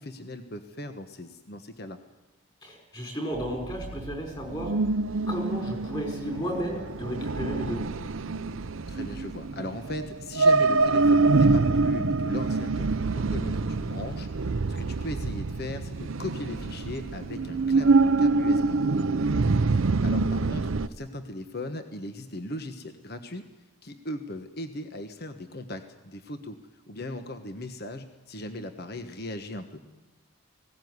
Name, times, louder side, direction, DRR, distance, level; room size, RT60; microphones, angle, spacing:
voice 1, 0.0-2.0 8.9-18.8 19.6-19.7 20.0-23.4 23.8-26.6 26.9-29.8, left 1 dB, 45° left, 7 dB, 1.3 m, -38 dB
voice 2, 2.6-4.7 5.3-7.9, equal, 20° left, 3 dB, 5.1 m, -33 dB
sound 1, 3.3-20.9, right 3 dB, 70° right, 0.7 m, -25 dB
19.5 x 17.0 x 9.6 m, 1.2 s
head